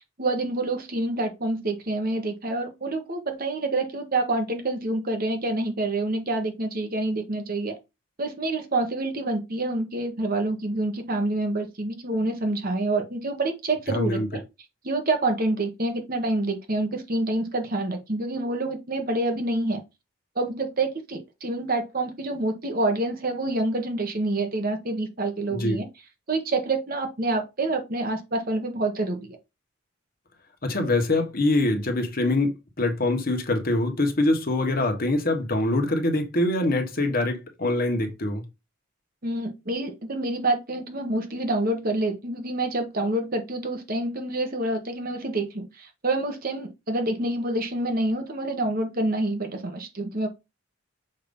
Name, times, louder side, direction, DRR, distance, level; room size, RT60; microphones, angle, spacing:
voice 1, 0.2-7.7 8.2-14.4 14.8-19.8 20.3-25.9 26.3-29.3 39.2-50.3, right 2 dB, 45° right, 1.3 m, -27 dB
voice 2, 13.9-14.3 25.5-25.8 30.6-38.4, left 2 dB, 45° left, 1.3 m, -24 dB
6.6 x 2.9 x 5.3 m
head